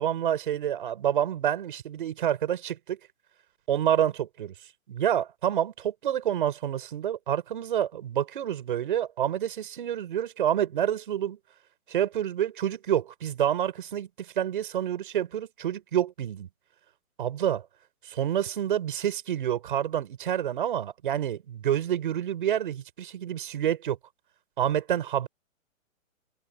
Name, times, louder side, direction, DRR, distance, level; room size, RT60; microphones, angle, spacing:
voice 1, 0.0-3.0 3.7-4.5 4.9-11.4 11.9-16.5 17.2-17.6 18.0-24.0 24.6-25.3, right 10 dB, 40° right, 6.3 m, -28 dB
hypercardioid pair, 180°, 41 cm